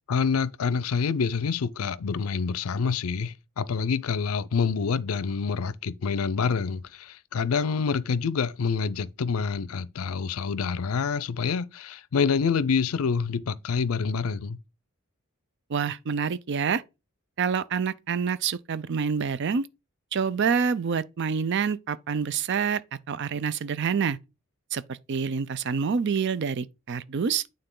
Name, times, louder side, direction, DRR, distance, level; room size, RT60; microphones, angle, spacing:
voice 1, 0.1-14.6, left 5 dB, 90° left, 0.5 m, -27 dB
voice 2, 15.7-16.8 17.4-19.7 20.1-22.8 23.1-24.2 24.7-27.4, right 6 dB, 55° right, 0.5 m, -27 dB
9.1 x 3.8 x 3.8 m
head